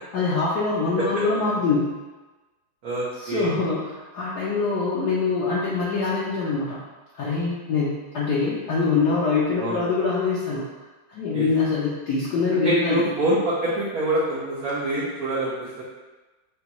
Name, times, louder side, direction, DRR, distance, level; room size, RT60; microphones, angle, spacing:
voice 1, 0.1-1.9 3.2-6.8 7.1-10.6 11.1-13.0, left 4 dB, 65° left, -7 dB, 1.1 m, -24 dB
voice 2, 2.8-3.5 9.6-9.9 11.3-11.4 12.5-15.8, right 1 dB, 60° right, -7 dB, 1.0 m, -25 dB
6.8 x 2.4 x 3.0 m, 1.2 s
omnidirectional pair, 2.3 m